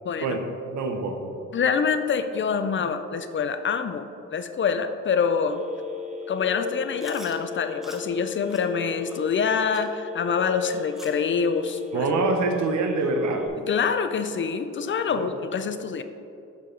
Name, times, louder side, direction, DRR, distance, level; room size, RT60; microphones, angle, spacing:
voice 1, 0.0-0.4 1.5-5.6 6.3-12.1 13.6-16.0, left 6 dB, 40° left, 9 dB, 0.5 m, -26 dB
voice 2, 0.7-1.3 11.9-13.5 15.1-15.3, right 3 dB, 65° right, 4 dB, 1.0 m, -25 dB
Telephone, 5.5-13.5, left 7 dB, 25° right, 1.0 m, -37 dB
Chewing mastication, 7.0-7.4 7.8-8.0 8.5-8.7 9.1-9.2 9.7-9.9 10.4-10.5 10.9-11.2 11.6-11.7 12.4-12.5 13.0-13.1 13.7-13.8, equal, ahead, 1.0 m, -45 dB
7.1 x 6.6 x 3.9 m, 2.7 s
cardioid pair, 90°, 30 cm